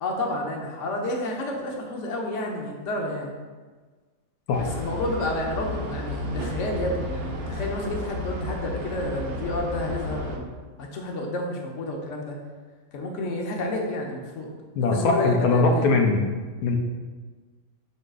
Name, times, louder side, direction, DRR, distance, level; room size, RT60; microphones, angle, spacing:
voice 1, 0.0-3.3 4.6-12.4 12.9-14.5 14.9-15.9, left 1 dB, 60° left, 0 dB, 1.2 m, -30 dB
sound 1, 4.5-10.4, left 1 dB, 75° right, 1.3 m, -32 dB
voice 2, 14.8-16.2 16.6-16.8, left 3 dB, 90° left, 2 dB, 1.2 m, -21 dB
11.0 x 3.8 x 2.4 m, 1.4 s
omnidirectional pair, 1.6 m